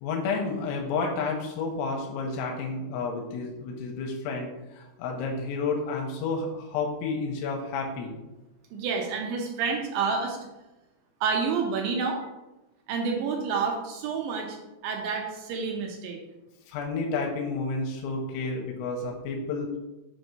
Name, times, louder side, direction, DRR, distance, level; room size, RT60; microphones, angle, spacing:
voice 1, 0.0-8.2 16.7-19.7, left 4 dB, 85° left, 0 dB, 3.3 m, -31 dB
voice 2, 8.7-10.4 11.2-12.2 12.9-14.6 14.8-16.2, right 5 dB, 85° right, 1 dB, 2.6 m, -29 dB
7.8 x 2.7 x 5.9 m, 0.99 s
omnidirectional pair, 5.9 m